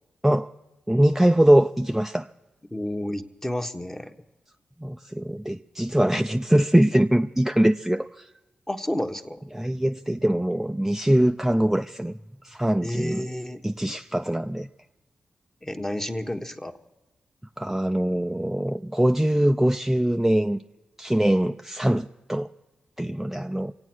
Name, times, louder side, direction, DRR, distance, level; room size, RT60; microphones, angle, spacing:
voice 1, 0.9-2.3 4.8-8.3 9.5-12.2 12.4-13.3 13.6-14.7 17.6-20.6 21.0-22.5 23.0-23.7, right 1 dB, 5° right, 0.5 m, -22 dB
voice 2, 2.7-4.1 8.7-9.4 12.8-13.6 15.6-16.7, left 1 dB, 15° left, 1.3 m, -30 dB
24.5 x 8.6 x 6.2 m
supercardioid pair, 45°, 3 cm